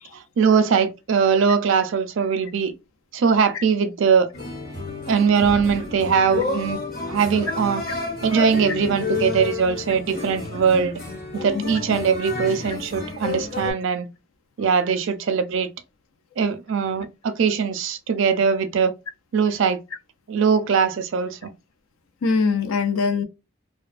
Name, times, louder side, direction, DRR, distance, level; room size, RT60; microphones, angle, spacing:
voice 1, 0.1-2.7 3.1-4.3 5.1-6.8 7.1-7.8 8.2-10.9 11.3-14.1 14.6-15.7 16.4-18.9 19.3-19.8 20.3-21.5, right 6 dB, 65° right, 0.4 m, -21 dB
sound 1, 4.3-13.7, left 3 dB, 45° left, 1.0 m, -30 dB
voice 2, 22.2-23.2, left 4 dB, 75° left, 0.4 m, -22 dB
2.4 x 2.2 x 2.4 m
head